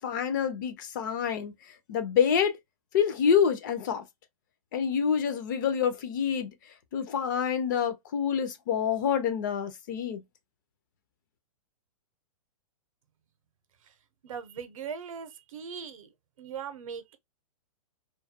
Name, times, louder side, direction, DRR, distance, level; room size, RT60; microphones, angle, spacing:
voice 1, 0.0-1.5 1.9-2.6 2.9-4.0 4.7-6.5 6.9-10.2, left 7 dB, 35° left, 0.4 m, -27 dB
voice 2, 14.2-16.1 16.4-17.2, right 7 dB, 75° right, 0.6 m, -39 dB
2.2 x 2.1 x 2.6 m
hypercardioid pair, 160°, 17 cm